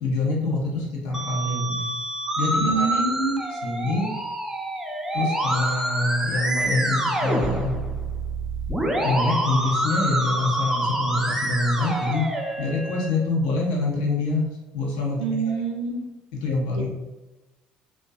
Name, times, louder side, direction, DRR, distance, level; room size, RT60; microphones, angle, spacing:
voice 1, 0.0-1.9 2.4-3.0 3.6-4.1 5.1-7.7 9.0-12.3 12.6-14.5 14.7-15.2 15.4-15.5 16.3-16.9, left 3 dB, 75° left, -3 dB, 0.7 m, -25 dB
Musical instrument, 1.1-13.1, right 1 dB, 10° right, 0.5 m, -27 dB
voice 2, 2.6-3.5 15.2-16.1 16.8-16.9, right 3 dB, 80° right, 0 dB, 0.4 m, -26 dB
2.5 x 2.1 x 2.2 m, 1.1 s
hypercardioid pair, 60°, 4 cm